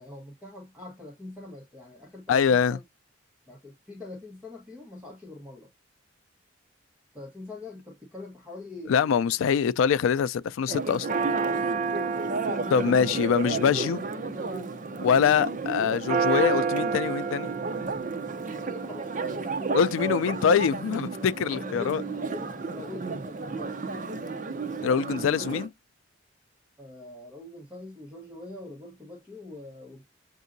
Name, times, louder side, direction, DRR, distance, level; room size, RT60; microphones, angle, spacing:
voice 1, 0.0-2.8 3.5-5.7 7.1-9.4 12.1-13.0 18.5-19.7 21.5-23.8 26.8-30.1, left 2 dB, 10° right, 1.2 m, -43 dB
voice 2, 2.3-2.8 8.9-11.1 12.7-14.0 15.0-17.5 19.7-22.0 24.8-25.7, left 7 dB, 85° left, 0.3 m, -24 dB
Church bell, 10.7-25.7, right 4 dB, 40° right, 0.6 m, -30 dB
7.2 x 2.6 x 2.6 m
head